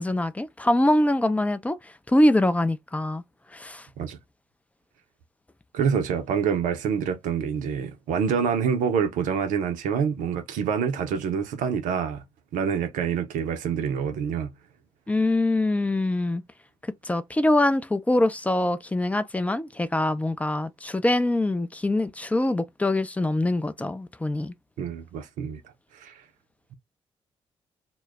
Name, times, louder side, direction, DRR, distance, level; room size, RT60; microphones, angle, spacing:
voice 1, 0.0-1.8 2.1-3.2 3.5-3.9 15.1-16.4 17.0-24.5, left 1 dB, 10° left, 0.4 m, -24 dB
voice 2, 5.7-12.2 12.5-14.5 24.8-25.6 25.9-26.2, right 7 dB, 65° right, 0.5 m, -26 dB
2.2 x 2.0 x 3.2 m
figure-of-eight pair, 40°, 14 cm